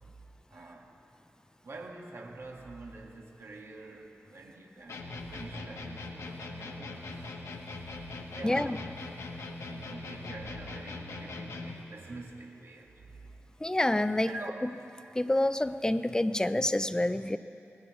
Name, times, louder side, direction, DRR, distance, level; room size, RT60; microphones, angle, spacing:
voice 1, 0.5-0.9 1.6-7.4 8.3-8.9 9.5-13.3 14.3-14.7, right 2 dB, 60° right, -1 dB, 1.7 m, -46 dB
sound 1, 4.9-11.9, left 3 dB, 85° left, 1.2 m, -41 dB
voice 2, 8.4-8.8 13.6-14.3 14.6-14.7 15.1-17.4, left 1 dB, 15° left, 12 dB, 0.5 m, -27 dB
22.0 x 18.5 x 3.1 m, 2.8 s
wide cardioid pair, 85°, 5 cm